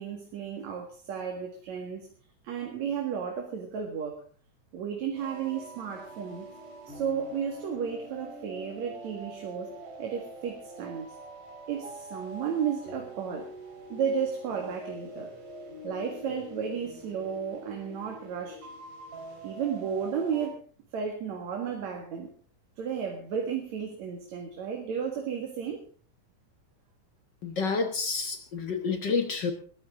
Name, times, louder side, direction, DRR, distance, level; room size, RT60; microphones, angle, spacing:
voice 1, 0.0-2.1 2.4-4.2 4.7-6.5 6.9-9.7 10.0-11.1 11.7-13.5 13.9-15.3 15.8-18.6 19.4-20.6 20.9-22.3 22.8-25.8, right 7 dB, 65° right, 3 dB, 3.1 m, -33 dB
sound 1, 5.1-20.5, right 1 dB, 90° right, 6.1 m, -45 dB
voice 2, 27.4-29.5, left 4 dB, 50° left, 7 dB, 1.3 m, -29 dB
21.0 x 14.5 x 3.7 m, 0.41 s
omnidirectional pair, 3.5 m